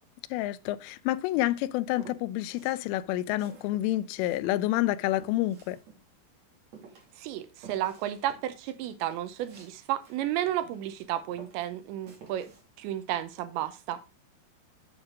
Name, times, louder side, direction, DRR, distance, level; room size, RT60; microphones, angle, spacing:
voice 1, 0.3-5.8, left 15 dB, 85° left, 3.1 m, -28 dB
Walk footsteps, 2.0-2.9 3.2-6.3 6.7-11.0 11.3-12.6, right 5 dB, 45° right, 2.9 m, -52 dB
voice 2, 7.2-12.5 12.8-14.0, right 12 dB, 80° right, 2.8 m, -32 dB
8.7 x 6.3 x 3.8 m
omnidirectional pair, 5.6 m